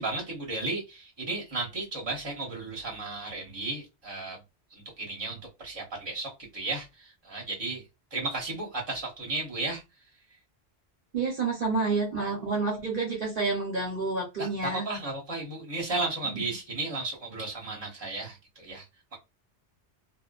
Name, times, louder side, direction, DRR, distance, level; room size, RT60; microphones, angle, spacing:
voice 1, 0.0-4.4 4.7-7.8 8.1-9.8 12.2-12.3 14.4-18.8 19.1-19.2, right 2 dB, 25° right, 0.9 m, -34 dB
voice 2, 11.1-14.8, right 3 dB, 55° right, 0.9 m, -29 dB
2.5 x 2.3 x 2.3 m
omnidirectional pair, 1.1 m